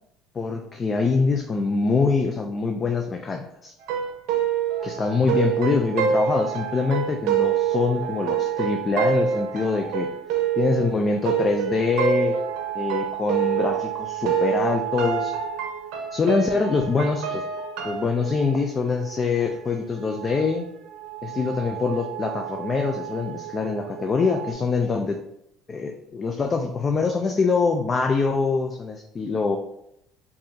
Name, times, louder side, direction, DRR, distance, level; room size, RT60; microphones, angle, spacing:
voice 1, 0.3-3.7 4.8-10.1 10.6-12.4 12.7-15.3 16.1-17.4 17.8-20.7 21.2-25.2 25.7-29.6, left 4 dB, 30° left, 3 dB, 0.3 m, -24 dB
sound 1, 3.8-14.0 14.3-18.1, right 7 dB, 80° right, 0.7 m, -26 dB
sound 2, 4.8-24.5, right 14 dB, 40° right, 0.5 m, -36 dB
4.6 x 2.5 x 2.7 m, 0.78 s
cardioid pair, 120°, 0 cm